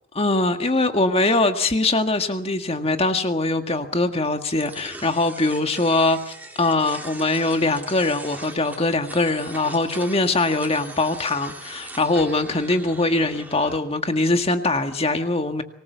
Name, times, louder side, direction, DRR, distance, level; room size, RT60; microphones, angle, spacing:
voice 1, 0.1-15.6, left 2 dB, 25° left, 7 dB, 1.8 m, -22 dB
sound 1, 4.6-13.8, right 2 dB, 10° right, 3.6 m, -40 dB
25.0 x 20.5 x 7.0 m, 0.63 s
head